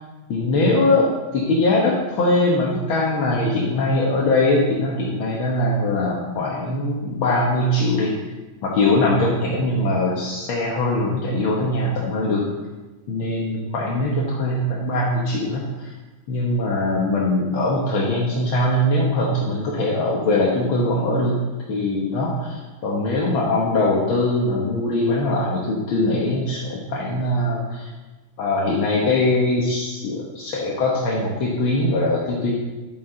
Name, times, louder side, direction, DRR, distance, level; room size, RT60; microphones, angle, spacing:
voice 1, 0.3-1.1 1.3-8.1 8.6-12.4 13.1-15.9 16.3-21.4 21.7-27.9 28.4-32.5, left 2 dB, 75° left, -4 dB, 2.1 m, -21 dB
11.5 x 8.5 x 3.9 m, 1.2 s
omnidirectional pair, 2.3 m